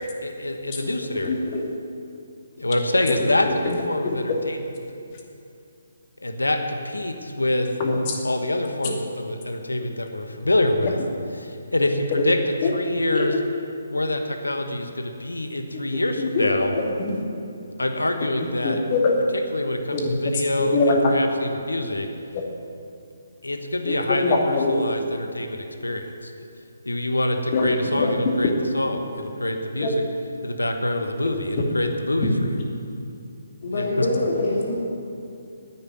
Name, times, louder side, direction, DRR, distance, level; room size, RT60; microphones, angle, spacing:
voice 1, 0.2-1.5 2.6-4.6 6.2-7.7 8.2-11.0 11.4-13.3 13.9-16.7 17.8-18.8 19.3-22.1 23.4-26.3 26.8-30.0 30.4-32.3 33.7-34.0, left 1 dB, 90° left, 5 dB, 1.3 m, -26 dB
voice 2, 1.2-1.7 3.1-3.2 3.4-4.1 7.8-8.2 10.8-10.9 12.6-12.7 13.1-13.3 15.7-16.5 16.7-17.2 18.6-19.2 19.9-20.4 20.7-21.1 22.3-22.4 23.8-23.9 24.2-24.8 27.5-28.4 29.8-29.9 31.2-31.3, left 3 dB, 35° left, 0 dB, 2.4 m, -23 dB
voice 3, 33.6-34.7, left 2 dB, 55° left, -6 dB, 3.0 m, -24 dB
10.0 x 9.1 x 9.4 m, 2.6 s
figure-of-eight pair, 145°, 0 cm